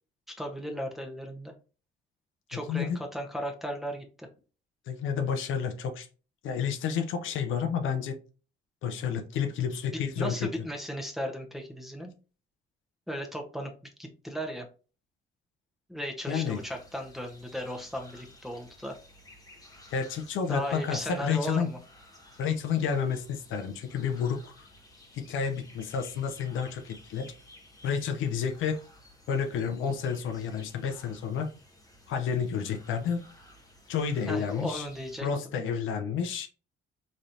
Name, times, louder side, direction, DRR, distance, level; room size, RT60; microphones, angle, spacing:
voice 1, 0.3-1.5 2.5-4.3 10.2-12.1 13.1-13.7 14.0-14.7 15.9-19.0 20.5-21.8 34.3-35.3, equal, ahead, 1 dB, 0.9 m, -36 dB
voice 2, 2.5-3.0 4.9-6.1 6.4-8.2 8.8-10.5 16.3-16.6 19.9-21.7 22.4-24.7 25.1-27.3 27.8-28.8 29.3-31.5 32.1-33.2 33.9-34.9 35.2-36.5, left 7 dB, 80° left, 6 dB, 0.6 m, -30 dB
sound 1, 16.3-35.2, left 1 dB, 20° left, 1.0 m, -55 dB
4.1 x 3.1 x 2.6 m, 0.36 s
cardioid pair, 90°, 20 cm